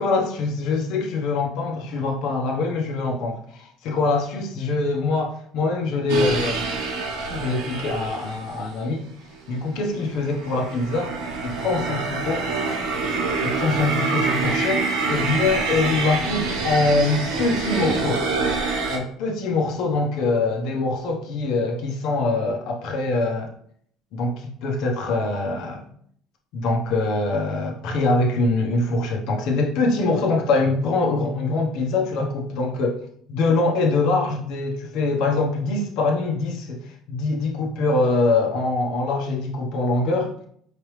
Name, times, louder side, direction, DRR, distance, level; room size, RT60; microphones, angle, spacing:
voice 1, 0.0-6.6 7.3-9.0 9.5-11.1 11.4-12.5 13.4-18.2 18.9-23.5 24.1-25.8 26.5-32.9 33.3-40.3, left 3 dB, 60° left, 1 dB, 1.1 m, -23 dB
sound 1, 6.1-8.6 9.4-19.0, right 4 dB, 85° right, 1.2 m, -26 dB
4.9 x 3.3 x 3.2 m, 0.63 s
cardioid pair, 145°, 0 cm